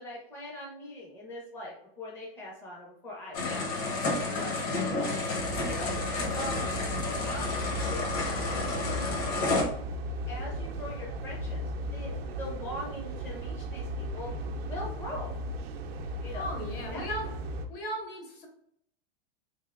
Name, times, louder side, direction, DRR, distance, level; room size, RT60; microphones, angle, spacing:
voice 1, 0.0-5.0 5.4-5.9 6.3-6.7 7.0-8.1 8.5-9.6 10.3-11.6 11.9-14.3 14.7-15.3 16.2-16.5 16.9-17.0, left 1 dB, 10° left, -3 dB, 0.5 m, -42 dB
sound 1, 3.3-9.6, left 3 dB, 35° left, 0.8 m, -31 dB
voice 2, 3.4-3.7 4.2-4.6 16.3-17.3 17.7-18.5, left 1 dB, 65° left, 1 dB, 1.4 m, -37 dB
sound 2, 5.4-17.7, equal, 85° right, 0.6 m, -36 dB
3.6 x 3.3 x 2.4 m, 0.70 s
supercardioid pair, 160°, 30 cm